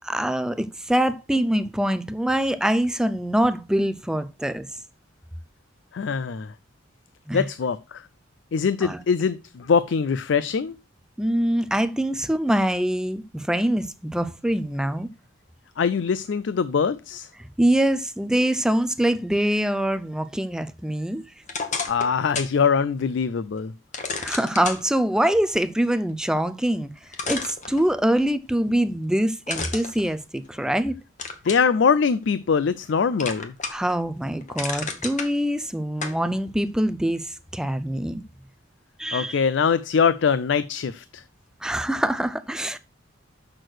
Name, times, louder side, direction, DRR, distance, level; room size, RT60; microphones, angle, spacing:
voice 1, 0.0-4.7 7.3-7.5 8.8-9.0 11.2-15.1 17.4-21.3 24.2-26.9 27.3-31.0 33.7-38.2 39.0-39.4 41.6-42.8, right 1 dB, 5° right, 0.4 m, -24 dB
voice 2, 5.9-6.5 7.3-8.0 8.5-10.8 15.8-17.3 21.8-23.7 31.4-33.5 39.1-41.2, left 6 dB, 60° left, 0.4 m, -23 dB
sound 1, 21.4-22.6 23.0-23.1 23.9-24.8 26.6-26.7 27.1-28.2 29.5-30.7 31.2-31.7 32.2-32.9 33.2-33.9 34.3-35.3 36.0-36.2, left 4 dB, 40° left, 1.2 m, -31 dB
6.4 x 6.3 x 6.2 m
head